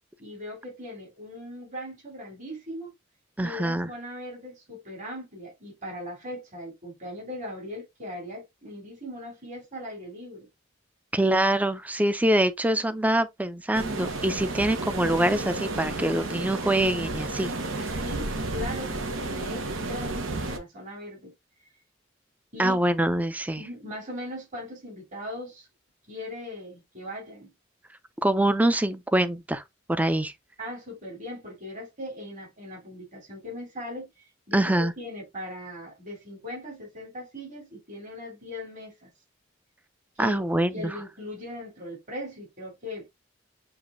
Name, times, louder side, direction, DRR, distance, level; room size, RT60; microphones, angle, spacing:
voice 1, 0.2-2.9 3.4-10.5 18.0-21.3 22.5-22.8 23.6-25.7 26.1-27.5 30.6-34.1 34.5-39.1 40.2-40.4 40.7-43.1, left 1 dB, 40° right, 2.7 m, -39 dB
voice 2, 3.4-3.9 11.1-17.9 22.6-23.6 28.2-29.6 29.9-30.3 34.5-34.9 40.2-40.9, right 1 dB, 10° right, 0.5 m, -24 dB
sound 1, 13.7-20.6, right 2 dB, 90° right, 0.9 m, -32 dB
6.9 x 3.1 x 2.5 m
head